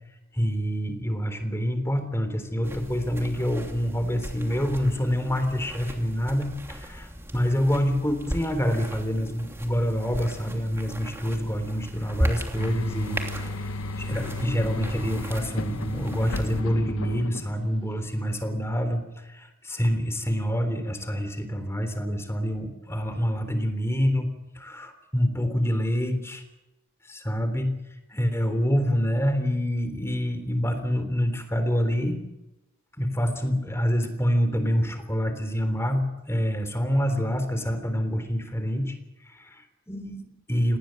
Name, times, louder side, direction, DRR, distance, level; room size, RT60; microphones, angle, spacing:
voice 1, 0.3-26.4 27.1-27.8 28.1-32.2 33.0-38.9 39.2-40.8, equal, 10° left, 9 dB, 3.5 m, -27 dB
sound 1, 2.6-16.6, equal, 10° right, 2.9 m, -36 dB
sound 2, 12.5-17.9, left 2 dB, 80° left, 0.9 m, -34 dB
27.5 x 19.5 x 7.8 m, 0.95 s
head